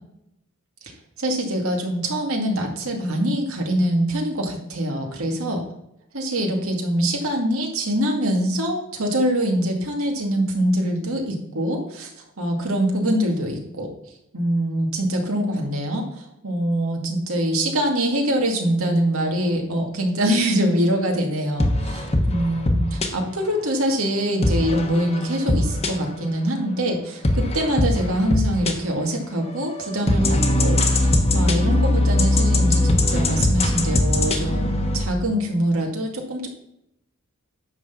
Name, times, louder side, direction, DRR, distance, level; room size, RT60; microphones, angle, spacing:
voice 1, 1.2-5.6 6.1-12.1 12.4-13.9 14.3-36.5, right 1 dB, 75° right, 1 dB, 2.2 m, -24 dB
sound 1, 21.6-23.1 24.4-26.3 27.2-28.7 29.4-35.0, left 1 dB, 30° left, 1.2 m, -20 dB
10.5 x 4.1 x 7.2 m, 0.79 s
head